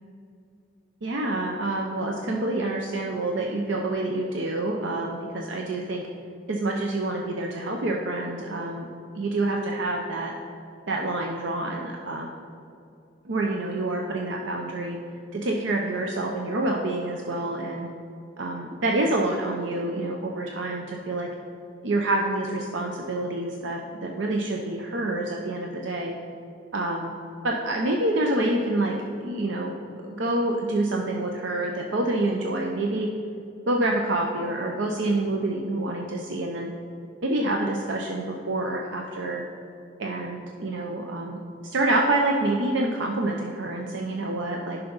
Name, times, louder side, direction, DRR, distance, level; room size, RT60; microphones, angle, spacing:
voice 1, 1.0-6.0 6.5-8.9 9.1-10.3 10.9-12.3 13.2-15.0 15.3-17.9 18.4-21.3 21.8-26.1 26.7-27.1 27.4-29.0 29.2-29.7 30.0-33.1 33.7-36.7 37.2-39.4 40.0-44.8, right 2 dB, 70° right, 1 dB, 0.6 m, -27 dB
10.5 x 5.7 x 3.9 m, 2.6 s
head